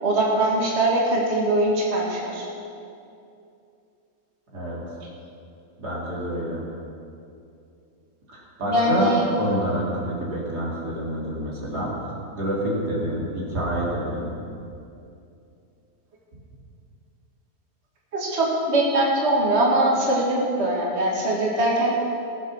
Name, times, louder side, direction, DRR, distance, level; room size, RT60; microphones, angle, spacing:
voice 1, 0.0-2.5 8.7-9.2 18.1-21.9, right 1 dB, 40° right, -3 dB, 2.3 m, -22 dB
voice 2, 5.8-6.6 8.3-9.1 9.4-11.9 12.3-14.4, equal, 75° right, -5 dB, 3.8 m, -27 dB
20.0 x 7.6 x 6.4 m, 2.6 s
omnidirectional pair, 1.7 m